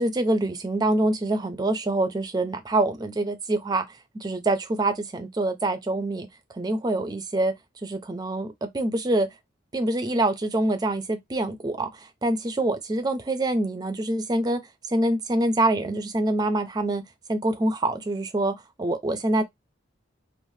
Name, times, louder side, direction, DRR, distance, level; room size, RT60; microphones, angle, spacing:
voice 1, 0.0-6.3 6.5-7.5 7.8-9.3 9.7-14.6 14.9-17.0 17.3-19.4, right 2 dB, 20° right, 0.4 m, -25 dB
3.2 x 2.1 x 2.6 m
head